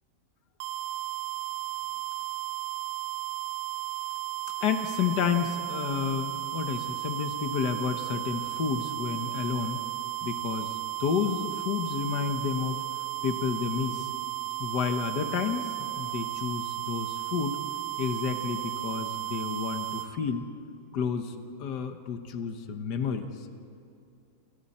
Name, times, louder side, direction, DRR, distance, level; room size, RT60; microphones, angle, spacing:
sound 1, 0.6-20.1, right 17 dB, 85° right, 1.4 m, -34 dB
voice 1, 4.6-9.8 10.2-12.8 13.2-14.1 14.6-17.6 18.0-20.5 20.9-23.3, left 6 dB, 65° left, 7 dB, 1.7 m, -30 dB
28.0 x 27.5 x 4.3 m, 2.5 s
omnidirectional pair, 1.9 m